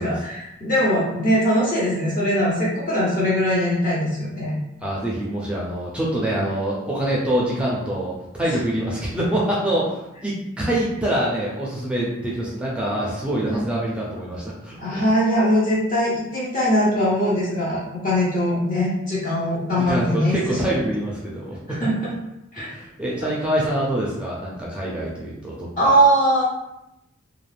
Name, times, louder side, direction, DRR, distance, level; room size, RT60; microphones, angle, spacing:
voice 1, 0.0-4.5 13.5-13.6 14.8-20.6 21.7-22.1 22.5-22.7 25.8-26.4, equal, 40° left, -7 dB, 0.6 m, -21 dB
voice 2, 4.8-8.1 8.4-14.8 19.8-21.8 22.6-26.0, right 1 dB, 5° right, -6 dB, 0.4 m, -25 dB
2.4 x 2.4 x 3.2 m, 0.88 s
head